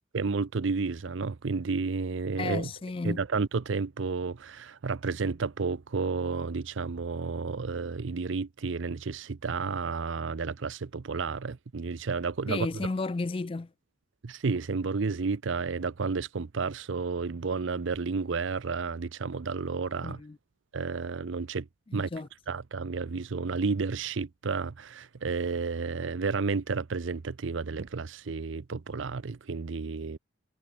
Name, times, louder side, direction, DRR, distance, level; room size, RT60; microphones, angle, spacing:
voice 1, 0.1-2.7 3.0-12.7 14.2-20.2 20.7-21.7 21.9-22.1 22.5-30.2, right 4 dB, 70° right, 0.6 m, -31 dB
voice 2, 2.4-3.2 12.5-13.7 20.0-20.4 21.9-22.3, left 3 dB, 25° left, 0.3 m, -33 dB
head